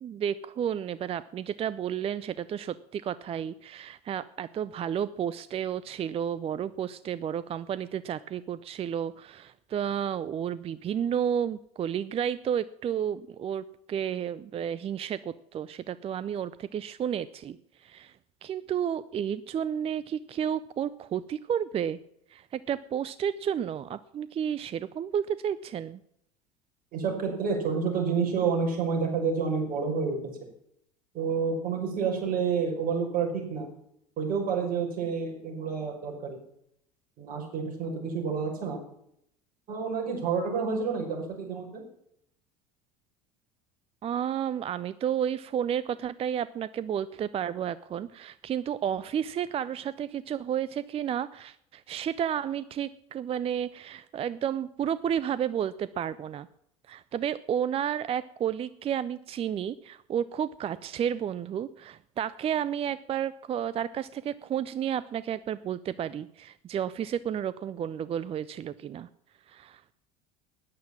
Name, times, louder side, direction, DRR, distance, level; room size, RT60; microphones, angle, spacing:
voice 1, 0.0-18.2 18.4-22.0 22.3-26.0 44.0-56.5 56.9-69.1 69.5-69.9, right 9 dB, 30° right, 17 dB, 0.5 m, -31 dB
voice 2, 26.9-30.2 31.1-33.7 34.2-36.4 37.2-38.8 39.7-41.8, right 5 dB, 45° right, 1 dB, 5.5 m, -29 dB
13.5 x 9.7 x 7.3 m, 0.72 s
figure-of-eight pair, 70°, 20 cm